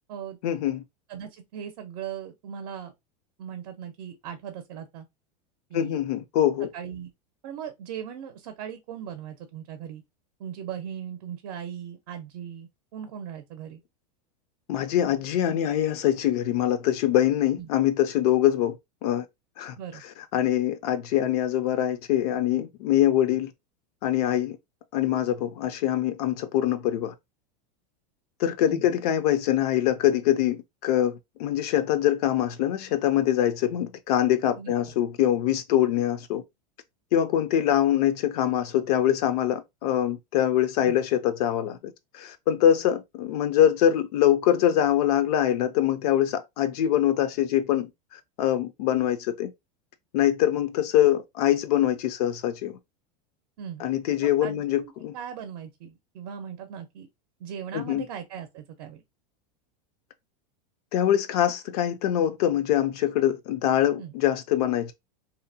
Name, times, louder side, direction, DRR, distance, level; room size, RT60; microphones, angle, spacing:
voice 1, 0.4-0.8 5.7-6.7 14.7-18.8 19.0-19.2 19.6-19.7 20.3-23.5 24.0-24.6 24.9-27.1 28.4-36.4 37.1-49.5 50.1-52.8 53.8-55.1 57.7-58.1 60.9-64.9, left 11 dB, 65° left, 0.4 m, -24 dB
voice 2, 1.1-2.9 3.4-5.1 5.7-6.0 6.7-7.1 7.4-10.0 10.4-13.8 17.6-17.7 19.8-20.0 28.7-28.8 34.6-34.7 40.8-41.0 53.6-53.9 54.2-57.1 57.4-59.0 64.0-64.1, right 9 dB, 60° right, 0.6 m, -38 dB
2.7 x 2.0 x 2.6 m
supercardioid pair, 140°, 21 cm